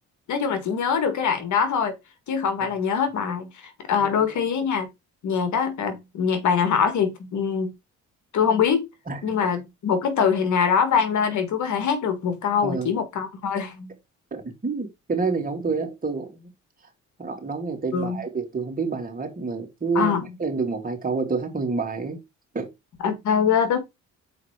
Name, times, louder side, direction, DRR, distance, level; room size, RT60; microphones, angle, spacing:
voice 1, 0.3-1.9 2.3-4.9 5.2-7.7 8.3-8.9 9.2-13.9 17.9-18.2 20.0-20.2 23.0-23.8, left 6 dB, 70° left, 1.9 m, -23 dB
voice 2, 4.0-4.3 9.1-9.5 12.6-12.9 14.3-16.5 17.2-20.1 20.4-22.2 22.5-22.7 23.0-23.1, right 4 dB, 30° right, 2.9 m, -28 dB
6.3 x 4.8 x 4.8 m
cardioid pair, 90°, 30 cm